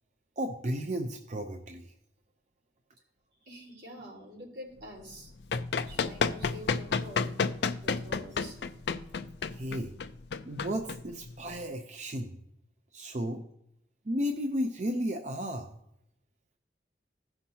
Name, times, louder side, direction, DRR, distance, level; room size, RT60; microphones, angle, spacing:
voice 1, 0.4-1.9 9.5-9.9 10.4-12.4 12.9-13.4 14.0-15.8, equal, 40° right, 4 dB, 0.6 m, -34 dB
voice 2, 3.4-5.3 5.9-7.3 7.8-8.6, left 1 dB, 80° right, -5 dB, 3.9 m, -46 dB
Run, 5.1-11.6, left 5 dB, 70° left, 0.5 m, -31 dB
16.5 x 5.8 x 2.8 m, 0.80 s
head